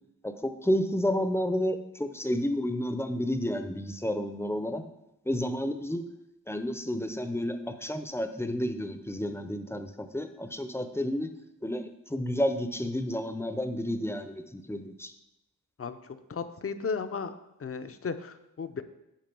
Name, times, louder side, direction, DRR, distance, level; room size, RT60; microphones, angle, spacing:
voice 1, 0.2-4.8 5.3-6.0 6.5-11.3 11.6-11.8 12.1-15.1, left 1 dB, 5° left, 8 dB, 0.7 m, -31 dB
voice 2, 15.8-17.3 17.6-18.8, left 5 dB, 40° left, 10 dB, 0.7 m, -35 dB
10.5 x 5.2 x 5.3 m, 0.88 s
wide cardioid pair, 115°, 34 cm